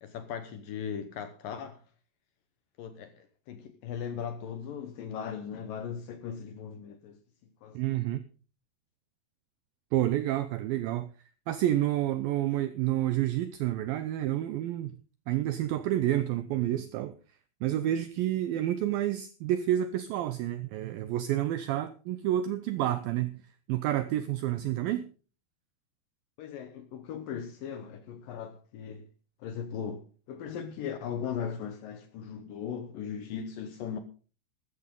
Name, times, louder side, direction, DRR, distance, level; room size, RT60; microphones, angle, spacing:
voice 1, 0.0-1.8 2.8-7.2 7.6-8.1 26.4-29.1 29.4-34.0, left 7 dB, 70° left, 2.2 m, -38 dB
voice 2, 7.7-8.2 9.9-11.1 11.5-15.0 15.3-17.2 17.6-23.4 23.7-25.0, right 13 dB, 85° right, 2.0 m, -29 dB
13.5 x 13.5 x 3.7 m
omnidirectional pair, 5.0 m